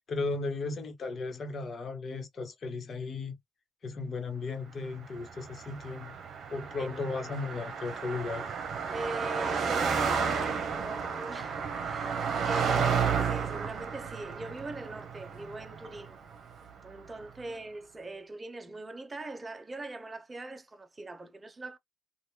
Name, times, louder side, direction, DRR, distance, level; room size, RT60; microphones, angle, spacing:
voice 1, 0.1-3.3 3.8-6.1 6.5-8.5 12.8-12.9 17.4-17.5, left 3 dB, 45° left, 1.2 m, -35 dB
Car passing by, 5.2-16.7, right 6 dB, 60° right, 0.9 m, -32 dB
voice 2, 8.9-16.2 16.8-21.8, right 2 dB, 25° right, 0.7 m, -42 dB
3.3 x 2.5 x 2.8 m
cardioid pair, 90°, 0 cm